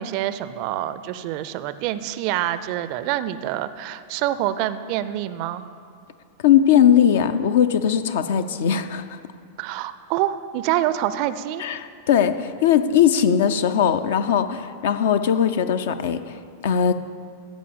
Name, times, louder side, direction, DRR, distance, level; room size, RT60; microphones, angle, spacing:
voice 1, 0.0-5.6 9.6-11.6, right 13 dB, 45° right, 14 dB, 0.4 m, -26 dB
voice 2, 6.4-9.2 11.6-16.3 16.6-16.9, left 9 dB, 55° left, 10 dB, 0.5 m, -19 dB
15.0 x 5.2 x 6.9 m, 2.2 s
figure-of-eight pair, 90°, 0 cm